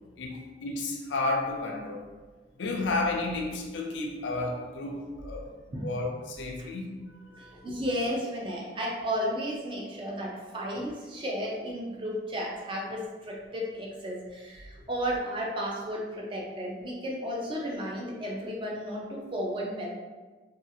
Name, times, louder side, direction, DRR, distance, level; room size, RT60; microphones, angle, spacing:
voice 1, 0.2-2.1 2.6-5.5 5.8-7.0 7.3-7.5, left 2 dB, 80° left, 1 dB, 0.4 m, -32 dB
voice 2, 7.4-19.9, equal, 25° right, -2 dB, 0.4 m, -33 dB
2.7 x 2.3 x 2.6 m, 1.3 s
head